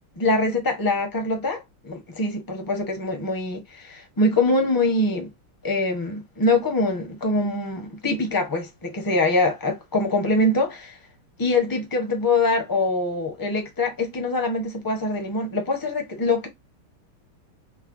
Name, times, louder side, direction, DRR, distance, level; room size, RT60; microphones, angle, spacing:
voice 1, 0.2-5.3 5.6-11.0 11.4-16.5, left 2 dB, 25° left, 0.5 m, -24 dB
5.4 x 2.2 x 2.5 m
omnidirectional pair, 2.4 m